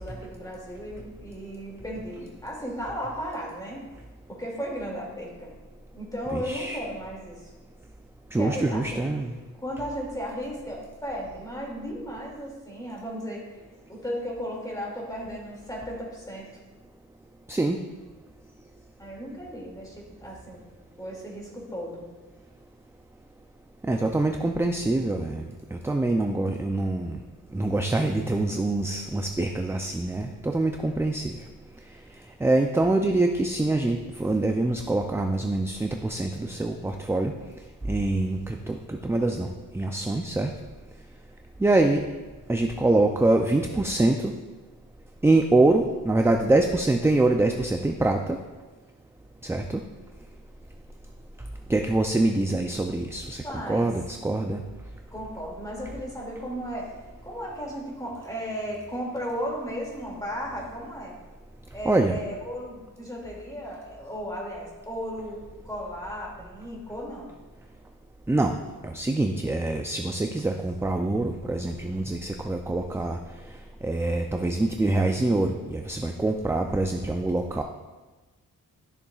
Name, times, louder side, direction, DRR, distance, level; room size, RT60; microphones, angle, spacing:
voice 1, 0.0-3.9 4.3-5.6 5.9-7.5 8.4-9.0 9.6-13.4 13.9-16.5 19.0-20.6 21.0-22.1 53.4-53.9 55.1-61.2 61.7-65.4 65.6-67.3, equal, 10° left, -3 dB, 2.3 m, -35 dB
voice 2, 6.3-6.8 8.3-9.3 17.5-17.8 23.9-27.2 27.5-31.3 32.4-37.3 37.9-40.5 41.6-42.0 42.5-44.3 45.2-48.4 49.4-49.8 51.7-54.6 61.9-62.2 68.3-68.5 68.8-73.2 73.8-77.6, right 2 dB, 10° right, 4 dB, 0.3 m, -25 dB
12.5 x 6.8 x 2.3 m, 1.2 s
wide cardioid pair, 125°, 34 cm